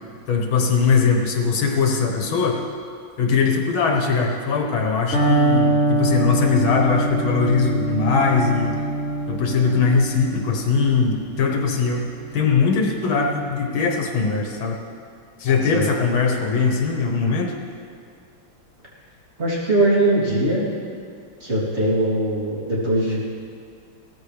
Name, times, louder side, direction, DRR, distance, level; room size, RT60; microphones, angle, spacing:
voice 1, 0.3-2.6 3.2-8.7 9.3-12.1 12.3-14.8 15.4-17.5, left 5 dB, 75° left, 1 dB, 2.0 m, -20 dB
Electric guitar, 5.1-13.0, right 2 dB, 35° left, 4.0 m, -24 dB
voice 2, 19.4-20.6 21.4-23.2, right 1 dB, 30° right, -7 dB, 3.4 m, -21 dB
17.0 x 14.5 x 3.4 m, 2.3 s
omnidirectional pair, 2.2 m